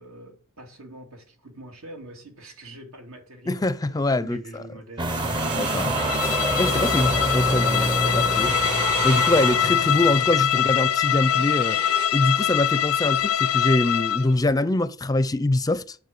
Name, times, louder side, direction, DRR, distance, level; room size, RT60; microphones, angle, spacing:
voice 1, 0.0-5.4 10.6-11.0, right 1 dB, 85° right, 2.8 m, -44 dB
voice 2, 3.5-4.6 5.5-8.5 9.0-11.8 12.1-16.0, left 2 dB, 20° left, 0.5 m, -24 dB
sound 1, 5.0-10.5, right 1 dB, 20° right, 0.7 m, -27 dB
sound 2, 5.1-12.2 13.1-13.7, right 4 dB, 55° right, 1.8 m, -33 dB
Bowed string instrument, 5.9-14.3, left 10 dB, 85° left, 0.5 m, -23 dB
9.5 x 5.4 x 7.8 m
head